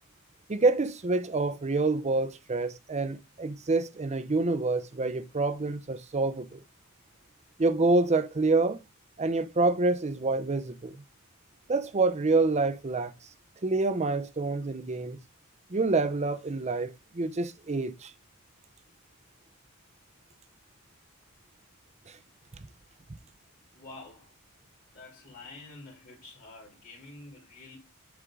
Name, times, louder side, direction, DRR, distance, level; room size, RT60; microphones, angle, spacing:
voice 1, 0.5-6.6 7.6-8.8 9.2-11.0 11.7-13.1 13.6-15.2 15.7-18.1 22.1-22.2, right 3 dB, 30° right, 0.6 m, -27 dB
voice 2, 23.7-24.3 24.9-27.8, left 2 dB, 40° left, 2.7 m, -48 dB
8.0 x 3.7 x 4.8 m
head